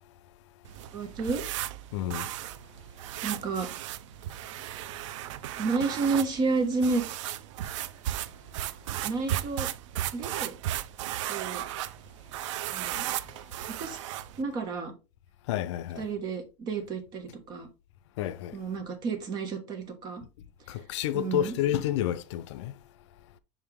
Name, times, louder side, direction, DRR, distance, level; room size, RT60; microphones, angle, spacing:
sound 1, 0.6-14.4, right 13 dB, 85° right, 0.5 m, -36 dB
voice 1, 0.9-1.5 3.2-3.7 5.6-7.0 9.0-9.7 10.1-10.5 11.3-11.6 12.7-13.0 13.6-14.0 14.4-14.9 16.0-17.7 18.5-20.2 21.1-21.5, right 4 dB, 25° right, 1.3 m, -31 dB
voice 2, 1.9-2.3 15.5-16.1 18.2-18.6 20.7-22.8, left 11 dB, 75° left, 0.6 m, -30 dB
5.5 x 5.1 x 3.6 m
supercardioid pair, 175°, 15 cm